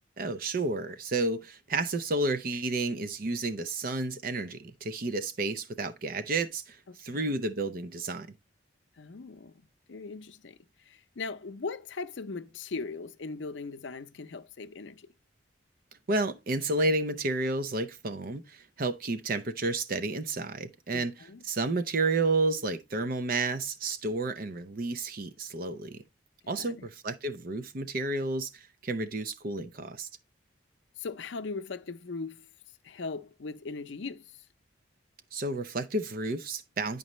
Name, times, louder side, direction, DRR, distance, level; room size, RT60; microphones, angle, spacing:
voice 1, 0.2-8.3 16.1-26.0 26.5-30.1 35.3-37.0, right 2 dB, 45° right, 0.5 m, -31 dB
voice 2, 6.9-7.3 9.0-9.6 9.9-10.6 10.9-15.1 20.9-21.4 26.4-26.9 31.0-32.5 32.8-34.3, left 4 dB, 70° left, 0.6 m, -39 dB
9.9 x 5.3 x 3.0 m
head